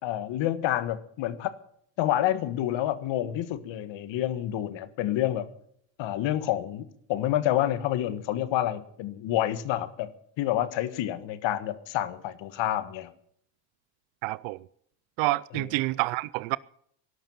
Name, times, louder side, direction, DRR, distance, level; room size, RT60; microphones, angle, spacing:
voice 1, 0.0-1.5 2.0-5.5 6.0-10.1 10.4-13.1 15.5-15.6, left 13 dB, 65° left, 1.6 m, -28 dB
voice 2, 14.2-14.6 15.2-16.6, right 21 dB, 75° right, 0.6 m, -28 dB
17.5 x 12.0 x 5.7 m
supercardioid pair, 80°, 47 cm